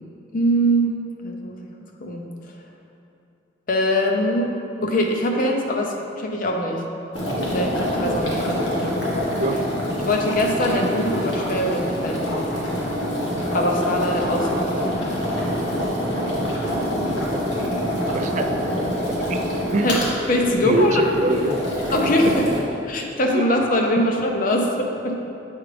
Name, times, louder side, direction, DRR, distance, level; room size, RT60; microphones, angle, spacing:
voice 1, 0.3-1.0 1.2-1.6 2.0-2.3 3.7-4.5 4.8-6.8 7.5-7.8 8.0-9.3 10.0-12.7 13.5-15.0 19.8-21.0 21.9-22.5 22.9-25.2, equal, 50° left, 2 dB, 0.7 m, -22 dB
sound 1, 7.1-22.6, equal, 90° left, 1.5 m, -25 dB
voice 2, 18.1-18.6 19.0-19.4 19.7-19.9 20.6-21.5 23.3-23.4 24.0-24.1, right 2 dB, 40° right, 6 dB, 0.3 m, -23 dB
8.1 x 4.9 x 3.3 m, 2.6 s
head